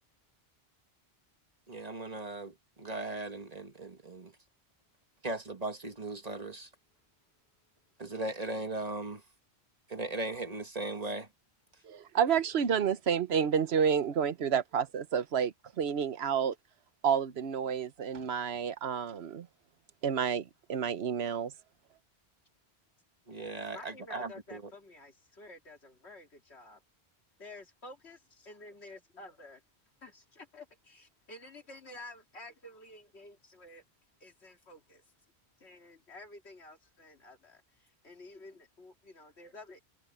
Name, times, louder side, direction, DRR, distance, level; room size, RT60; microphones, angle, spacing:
voice 1, 1.7-4.3 5.2-6.7 8.0-9.2 9.9-11.3 23.3-24.6, right 2 dB, 35° right, 1.7 m, -38 dB
voice 2, 11.8-16.5 17.0-19.5 20.0-21.5, right 7 dB, 75° right, 1.1 m, -30 dB
voice 3, 23.7-26.8 27.4-29.6 30.0-33.8 34.2-35.0 35.6-39.8, left 2 dB, 85° left, 2.8 m, -51 dB
omnidirectional pair, 1.1 m